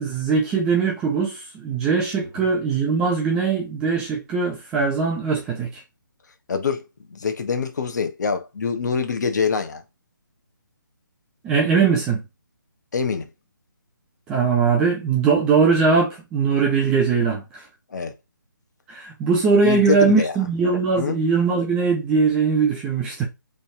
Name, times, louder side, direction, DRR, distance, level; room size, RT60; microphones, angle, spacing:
voice 1, 0.0-5.7 11.4-12.2 14.3-17.4 18.9-23.2, right 5 dB, 5° right, 0.4 m, -20 dB
voice 2, 6.5-6.8 7.1-9.8 12.9-13.3 17.9-18.1 19.6-20.4 21.0-21.2, left 5 dB, 55° left, 0.8 m, -24 dB
3.2 x 2.3 x 4.1 m
hypercardioid pair, 160°, 11 cm